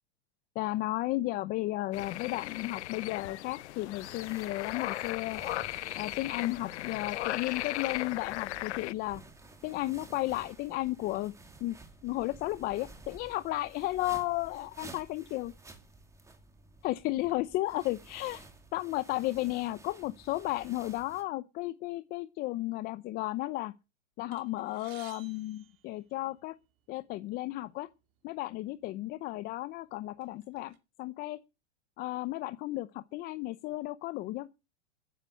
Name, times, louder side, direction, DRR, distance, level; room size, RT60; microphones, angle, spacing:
voice 1, 0.6-5.4 6.0-9.2 9.6-11.3 11.6-11.8 12.0-15.5 16.8-18.5 18.7-23.7 24.2-26.5 26.9-27.9 28.2-30.7 31.0-31.4 32.0-34.5, left 17 dB, 25° left, 0.7 m, -34 dB
sound 1, 1.9-8.9, left 15 dB, 70° left, 0.8 m, -37 dB
sound 2, 3.9-21.2, right 2 dB, 10° right, 2.5 m, -53 dB
sound 3, 24.3-26.6 27.5-27.6 27.9-28.1 29.0-29.1 29.6-30.8, right 13 dB, 35° right, 2.5 m, -56 dB
14.0 x 10.0 x 6.4 m
hypercardioid pair, 145°, 36 cm